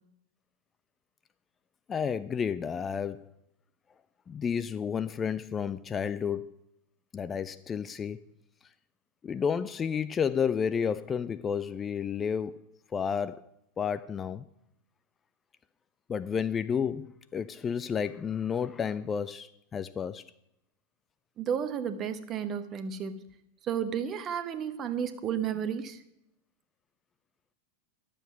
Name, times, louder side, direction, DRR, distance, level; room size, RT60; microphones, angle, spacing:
voice 1, 1.9-3.3 4.3-6.5 7.1-8.2 9.2-12.6 12.9-13.4 13.8-14.4 16.1-20.2, left 7 dB, 20° left, 0.3 m, -31 dB
voice 2, 21.4-23.3 23.6-26.0, right 8 dB, 30° right, 1.0 m, -32 dB
11.5 x 7.6 x 5.9 m
figure-of-eight pair, 90°, 0 cm